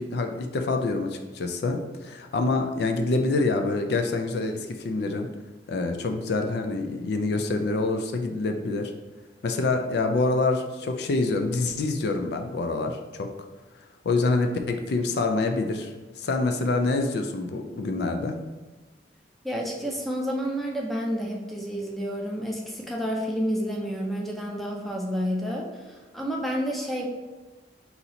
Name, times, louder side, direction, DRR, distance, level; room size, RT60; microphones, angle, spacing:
voice 1, 0.0-5.3 5.7-8.9 9.4-13.3 14.0-18.4, left 3 dB, 60° left, 5 dB, 0.4 m, -26 dB
voice 2, 19.4-27.1, equal, ahead, -1 dB, 0.5 m, -30 dB
4.0 x 2.8 x 4.1 m, 1.3 s
head